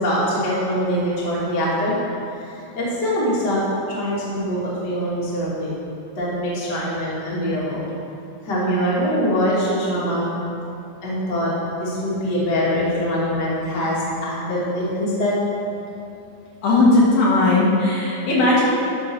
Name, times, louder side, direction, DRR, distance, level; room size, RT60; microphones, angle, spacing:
voice 1, 0.0-1.9 2.5-3.6 3.9-5.7 6.2-7.8 8.4-10.3 11.0-15.4, equal, 30° left, -8 dB, 2.7 m, -23 dB
voice 2, 16.6-18.6, left 2 dB, 65° left, -6 dB, 3.5 m, -17 dB
12.0 x 6.4 x 6.3 m, 2.7 s
omnidirectional pair, 4.7 m